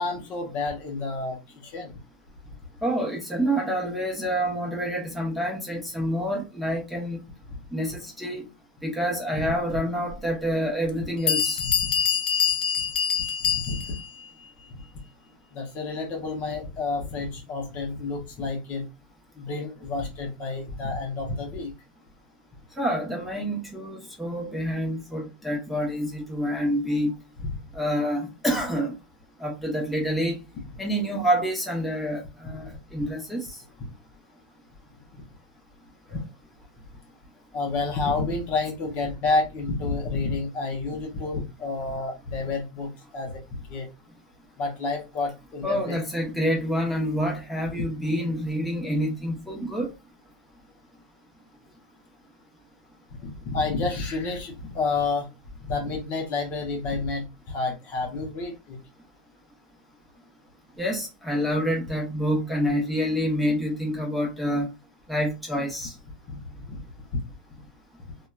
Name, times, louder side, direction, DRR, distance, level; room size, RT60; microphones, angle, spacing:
voice 1, 0.0-1.9 9.5-9.6 11.6-11.9 13.4-14.0 15.5-18.9 19.4-21.7 27.4-27.5 32.7-32.8 33.8-33.9 36.1-36.2 37.5-43.9 44.6-46.0 53.2-55.3 55.7-58.8 66.3-66.4 66.7-66.8, left 3 dB, 35° left, 0.7 m, -30 dB
voice 2, 2.8-7.2 7.7-8.5 8.8-11.6 22.8-27.2 27.7-29.0 29.4-30.4 30.8-33.6 45.6-49.9 60.8-64.7 65.1-65.9, equal, ahead, 0.8 m, -27 dB
Bell, 10.1-10.2 10.9-11.0 11.3-14.1, left 7 dB, 90° left, 0.5 m, -25 dB
2.7 x 2.2 x 2.2 m
supercardioid pair, 140°, 5 cm